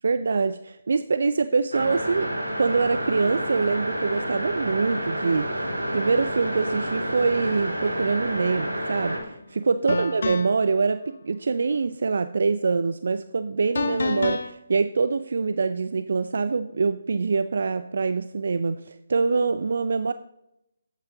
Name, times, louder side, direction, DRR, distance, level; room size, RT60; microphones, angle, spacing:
voice 1, 0.0-2.3 2.6-20.1, right 4 dB, 60° right, 12 dB, 0.4 m, -24 dB
sound 1, 1.7-9.2, equal, 85° right, 2.5 m, -29 dB
sound 2, 9.1-9.2 9.9-10.7 13.8-14.5, left 4 dB, 60° left, 0.8 m, -28 dB
14.5 x 9.1 x 2.8 m, 0.81 s
figure-of-eight pair, 145°, 0 cm